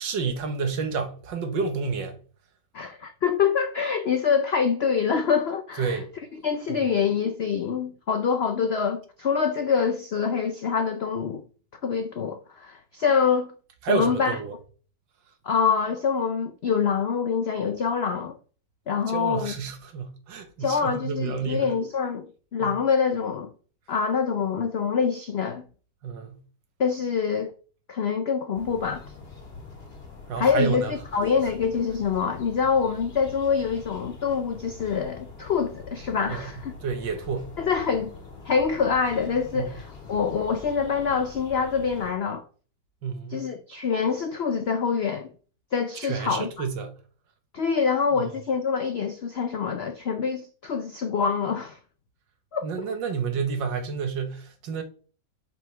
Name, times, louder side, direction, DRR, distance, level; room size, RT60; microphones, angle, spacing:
voice 1, 0.0-2.2 5.8-6.1 6.7-6.9 13.8-14.5 19.1-21.7 22.6-22.8 26.0-26.4 30.3-30.9 36.3-36.5 36.8-37.5 39.5-39.7 43.0-43.5 46.0-46.9 48.1-48.4 52.6-54.8, right 5 dB, 90° right, 1.8 m, -30 dB
voice 2, 2.7-6.0 6.4-11.4 11.8-13.5 13.9-14.4 15.4-18.3 18.9-19.5 20.6-22.3 22.5-23.5 23.9-25.6 26.8-27.5 27.9-29.0 30.4-36.7 37.6-38.1 38.5-42.4 43.3-45.3 45.7-46.6 47.5-51.8 52.5-52.6, left 6 dB, 85° left, 0.5 m, -25 dB
sound 1, 28.5-42.1, left 4 dB, 35° left, 1.8 m, -44 dB
7.6 x 5.7 x 3.3 m
omnidirectional pair, 1.9 m